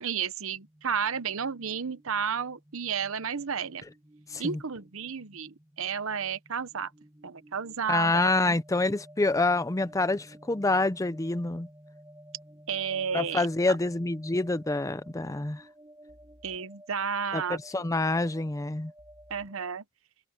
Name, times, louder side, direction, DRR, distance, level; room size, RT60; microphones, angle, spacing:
voice 1, 0.0-3.8 4.4-6.9 7.2-8.5 12.7-13.5 16.4-17.8 19.3-19.8, right 6 dB, 65° right, 0.9 m, -32 dB
sound 1, 0.5-19.7, right 1 dB, 15° right, 1.9 m, -54 dB
voice 2, 7.9-11.7 13.1-15.6 17.3-18.9, left 2 dB, 15° left, 0.5 m, -27 dB
head